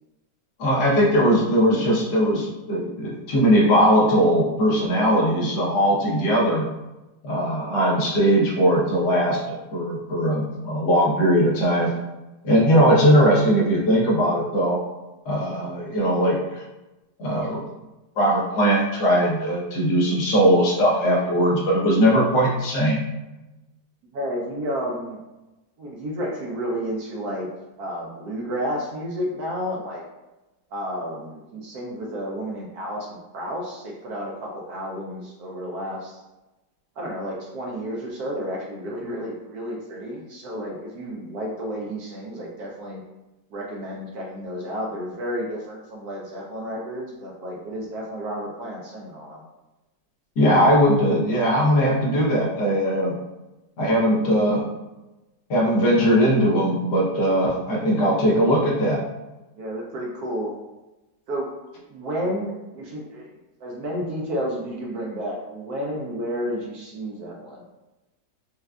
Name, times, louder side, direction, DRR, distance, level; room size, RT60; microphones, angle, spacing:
voice 1, 0.6-6.7 7.2-11.9 12.4-14.8 15.2-16.6 17.2-17.7 18.2-23.0 50.4-53.2 53.8-54.6 55.5-59.0, equal, 70° left, -4 dB, 1.5 m, -20 dB
voice 2, 24.1-25.2 25.8-27.5 27.8-30.0 30.7-36.2 37.0-43.0 43.5-49.4 59.6-60.5 61.3-61.5 61.9-63.3 63.6-67.7, equal, 70° right, -2 dB, 1.0 m, -31 dB
4.7 x 2.4 x 2.2 m, 1.0 s
omnidirectional pair, 1.9 m